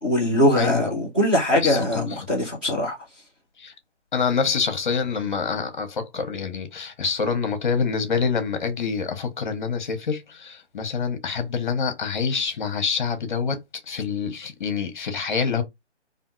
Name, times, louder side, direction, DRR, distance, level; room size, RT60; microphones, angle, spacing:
voice 1, 0.0-3.0, left 1 dB, 10° right, 0.5 m, -21 dB
voice 2, 0.6-0.9 1.6-2.0 3.6-3.7 4.1-13.6 13.9-15.6, left 5 dB, 45° left, 0.8 m, -26 dB
2.7 x 2.5 x 2.4 m
figure-of-eight pair, 150°, 36 cm